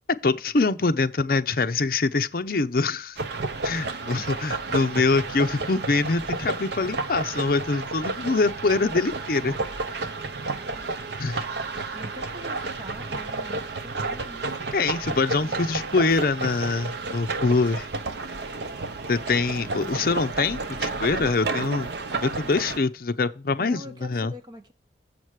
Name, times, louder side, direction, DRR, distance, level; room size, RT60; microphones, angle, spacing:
voice 1, 0.2-3.2 3.6-9.6 11.2-11.4 14.7-17.9 19.1-21.9 22.2-24.3, left 3 dB, 55° left, 0.6 m, -24 dB
sound 1, 3.2-22.8, right 3 dB, 70° right, 0.7 m, -31 dB
voice 2, 3.8-4.3 10.4-10.9 11.9-14.6 19.6-20.2 23.6-24.7, equal, 25° right, 1.3 m, -44 dB
7.4 x 6.1 x 4.8 m
head